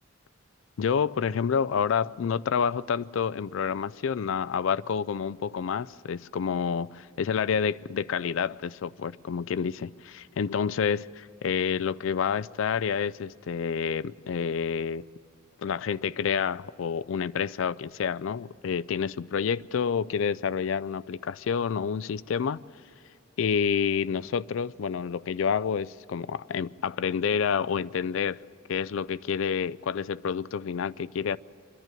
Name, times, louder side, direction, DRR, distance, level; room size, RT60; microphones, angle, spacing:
voice 1, 0.8-15.0 15.6-22.6 23.4-28.4 28.7-31.4, left 6 dB, 65° left, 0.4 m, -28 dB
26.0 x 11.0 x 9.1 m
head